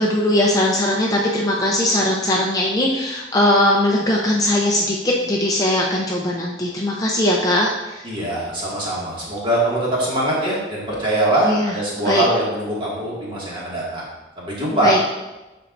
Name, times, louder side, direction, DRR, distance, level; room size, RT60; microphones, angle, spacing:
voice 1, 0.0-8.1 11.4-11.8 12.0-12.2 14.8-15.0, left 1 dB, 20° left, -2 dB, 0.6 m, -19 dB
voice 2, 8.0-14.0 14.4-14.9, right 1 dB, 25° right, -6 dB, 2.0 m, -22 dB
12.5 x 4.5 x 2.6 m, 1.1 s
head